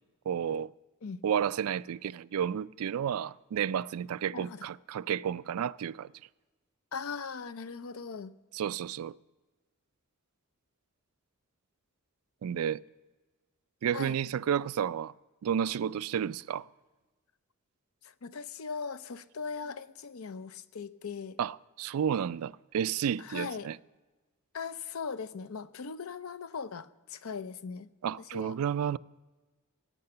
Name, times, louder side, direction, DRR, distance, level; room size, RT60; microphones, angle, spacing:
voice 1, 0.3-0.7 1.2-6.1 8.5-9.2 12.4-12.8 13.8-15.1 15.4-16.7 21.4-23.8 28.0-29.0, right 8 dB, 85° right, 0.3 m, -31 dB
voice 2, 4.3-4.7 6.9-8.3 13.9-14.2 18.0-21.4 23.2-23.7 24.5-27.9 28.3-28.6, left 5 dB, 80° left, 0.6 m, -39 dB
16.0 x 8.7 x 6.7 m
head